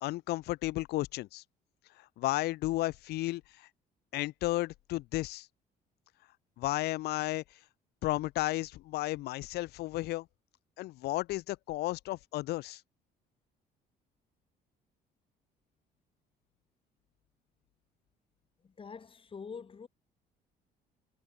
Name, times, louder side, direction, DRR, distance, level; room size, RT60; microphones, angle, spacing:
voice 1, 0.0-1.4 2.2-3.7 4.1-5.5 6.6-7.4 8.0-10.3 10.8-12.8, left 18 dB, 75° left, 0.5 m, -33 dB
voice 2, 18.6-19.9, left 5 dB, 30° left, 3.7 m, -45 dB
cardioid pair, 110°, 17 cm